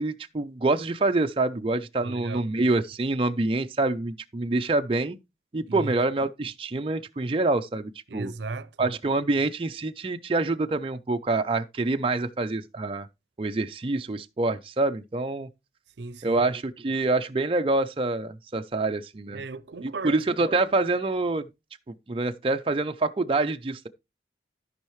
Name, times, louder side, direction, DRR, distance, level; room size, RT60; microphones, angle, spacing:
voice 1, 0.0-5.2 5.5-8.3 8.8-13.1 13.4-15.5 16.2-19.4 19.8-21.4 21.9-23.9, right 2 dB, 30° right, 0.4 m, -26 dB
voice 2, 2.0-2.5 5.7-5.9 8.1-8.9 16.0-16.4 19.3-20.3, right 3 dB, 75° right, 0.6 m, -35 dB
13.5 x 5.5 x 3.1 m
head